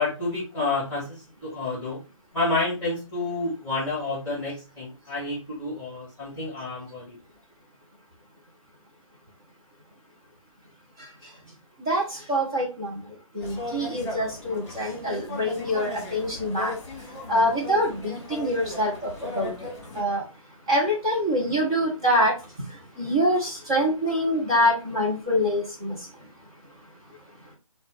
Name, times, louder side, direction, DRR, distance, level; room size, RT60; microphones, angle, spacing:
voice 1, 0.0-2.0 2.3-7.2, left 3 dB, 5° left, -10 dB, 1.9 m, -29 dB
voice 2, 11.9-13.0 13.3-16.7 17.3-19.1 19.4-19.7 19.9-20.2 20.7-22.3 23.0-26.0, equal, 10° right, -4 dB, 0.4 m, -25 dB
sound 1, 13.4-20.0, left 3 dB, 30° left, 1.2 m, -37 dB
4.0 x 2.1 x 3.0 m, 0.31 s
figure-of-eight pair, 160°, 17 cm